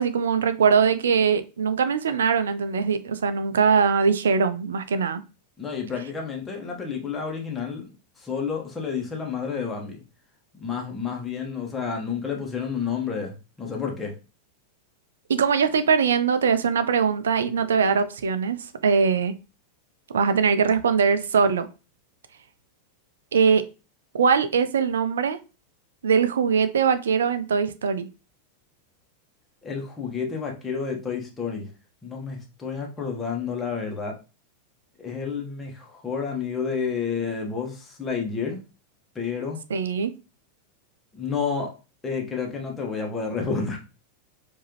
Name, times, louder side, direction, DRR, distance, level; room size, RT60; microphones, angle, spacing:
voice 1, 0.0-5.2 15.3-19.3 20.1-21.7 23.3-23.6 24.1-25.4 26.0-28.1 39.7-40.1, right 6 dB, 65° right, 12 dB, 0.5 m, -21 dB
voice 2, 5.6-10.0 10.5-14.1 29.6-31.7 32.0-34.1 35.0-38.6 39.1-39.6 41.1-41.7 42.0-43.8, left 6 dB, 15° left, 0 dB, 1.3 m, -30 dB
4.6 x 2.7 x 3.0 m, 0.31 s
figure-of-eight pair, 90°, 0 cm